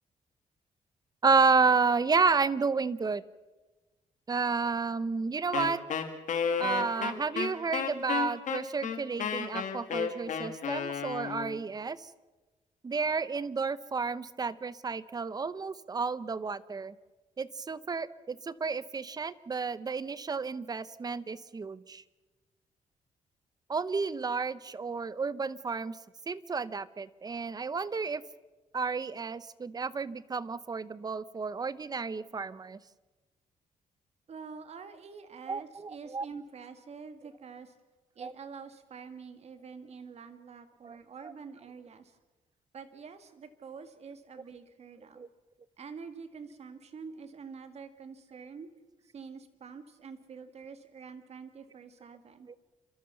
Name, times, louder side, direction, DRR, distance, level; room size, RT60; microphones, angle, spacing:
voice 1, 1.2-3.2 4.3-5.8 6.6-12.1 12.8-16.9 17.4-22.0 23.7-26.0 26.3-28.2 28.7-32.8 35.5-36.3 38.2-38.3 40.8-41.0 41.2-41.3 45.2-45.3 52.5-52.6, right 4 dB, 30° right, 16 dB, 0.8 m, -31 dB
Wind instrument woodwind instrument, 5.5-11.6, left 7 dB, 65° left, 2.1 m, -32 dB
voice 2, 34.3-37.7 38.2-42.1 42.7-45.3 45.8-48.7 49.1-52.5, right 5 dB, 50° right, 8 dB, 1.9 m, -46 dB
29.5 x 13.0 x 7.0 m, 1.2 s
cardioid pair, 115°, 14 cm